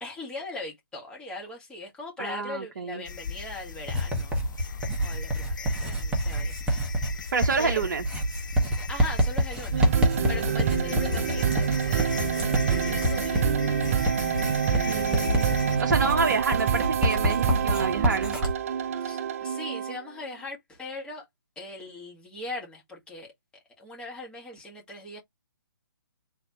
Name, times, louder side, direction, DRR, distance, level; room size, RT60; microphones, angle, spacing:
voice 1, 0.0-6.8 7.6-7.8 8.6-10.0 10.3-13.9 15.9-16.2 18.9-21.3 21.6-23.3 23.8-25.2, left 2 dB, 10° left, 1.8 m, -40 dB
voice 2, 2.2-3.0 7.3-8.0 14.9-15.5 15.8-18.4, right 4 dB, 55° right, 0.9 m, -28 dB
sound 1, 3.0-15.8, left 5 dB, 60° left, 0.8 m, -37 dB
Writing, 3.9-18.5, right 1 dB, 10° right, 1.3 m, -28 dB
sound 2, 9.7-20.1, right 8 dB, 40° right, 0.6 m, -27 dB
4.0 x 3.3 x 3.0 m
figure-of-eight pair, 140°, 12 cm